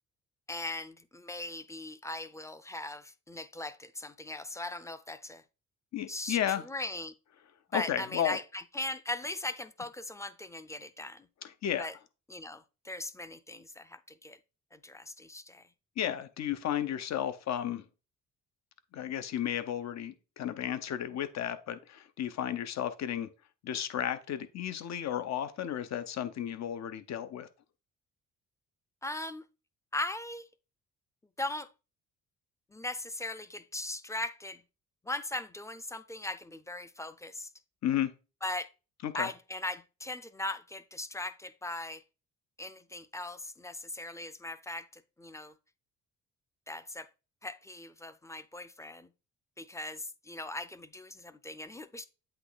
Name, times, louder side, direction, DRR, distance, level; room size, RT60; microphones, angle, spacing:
voice 1, 0.5-5.4 6.1-6.4 6.6-7.1 7.7-11.3 11.8-11.9 12.3-14.4 14.7-15.7 29.0-29.4 29.9-30.5 31.4-31.7 32.7-34.6 35.0-37.5 38.4-38.7 39.1-42.0 42.6-45.5 46.7-47.1 47.4-49.1 49.6-52.1, left 2 dB, 10° left, 0.5 m, -39 dB
voice 2, 5.9-6.7 7.7-8.4 11.4-11.9 16.0-17.8 18.9-23.3 23.6-27.5 37.8-38.1 39.0-39.3, left 10 dB, 65° left, 0.8 m, -33 dB
8.0 x 3.1 x 4.0 m
cardioid pair, 90°, 30 cm